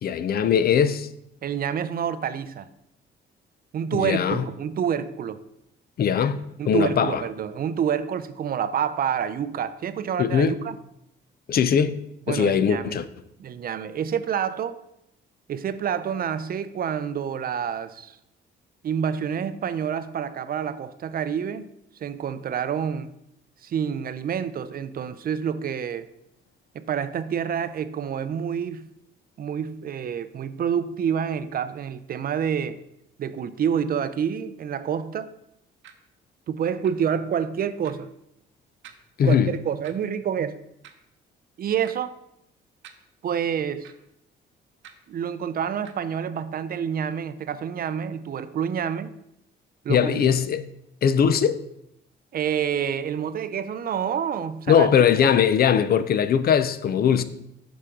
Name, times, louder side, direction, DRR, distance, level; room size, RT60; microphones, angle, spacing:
voice 1, 0.0-1.1 3.9-4.4 6.0-6.4 6.7-7.2 10.2-10.6 11.5-12.0 12.3-13.0 39.2-39.5 49.9-50.6 51.0-51.6 54.7-57.2, left 8 dB, 50° left, 0.4 m, -20 dB
voice 2, 1.4-2.7 3.7-5.4 6.6-10.7 12.3-13.0 13.4-14.8 15.5-18.2 18.8-21.7 22.0-23.1 23.6-26.1 26.7-28.9 29.4-32.8 33.2-35.3 36.5-38.1 39.2-40.6 41.6-42.2 43.2-43.9 45.1-49.1 49.8-50.4 52.3-54.9 55.2-55.4, right 8 dB, 50° right, 0.4 m, -28 dB
sound 1, 35.8-35.9 36.8-36.9 37.8-37.9 38.8-39.0 39.8-39.9 40.8-41.0 41.8-41.9 42.8-42.9 43.8-44.0 44.8-45.0 45.8-45.9, right 9 dB, 75° right, 0.7 m, -46 dB
6.7 x 5.1 x 3.7 m
cardioid pair, 90°, 20 cm